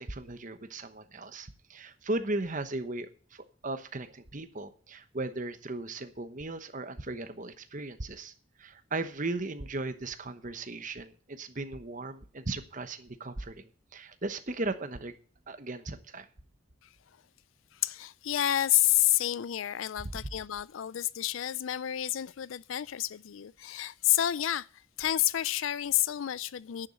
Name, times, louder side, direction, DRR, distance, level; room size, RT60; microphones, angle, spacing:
voice 1, 0.0-8.3 8.6-15.1 15.5-16.3, right 2 dB, 40° right, 1.0 m, -37 dB
voice 2, 17.7-26.9, left 13 dB, 80° left, 0.4 m, -29 dB
10.5 x 7.0 x 7.6 m
head